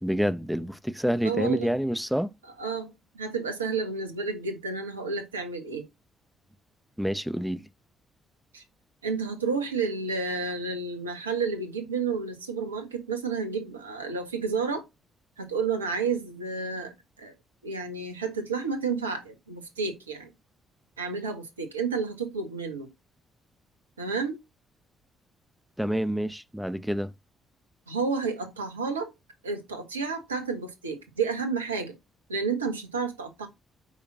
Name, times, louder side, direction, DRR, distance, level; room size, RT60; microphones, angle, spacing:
voice 1, 0.0-2.3 7.0-7.7 25.8-27.1, equal, ahead, 0.9 m, -28 dB
voice 2, 1.2-1.7 2.6-5.8 8.5-8.6 9.0-14.8 15.4-16.9 17.2-17.3 17.6-20.3 21.0-22.9 24.0-24.4 27.9-29.1 29.4-31.9 32.3-33.5, right 5 dB, 85° right, 1.5 m, -31 dB
8.2 x 5.6 x 4.0 m
figure-of-eight pair, 45°, 0 cm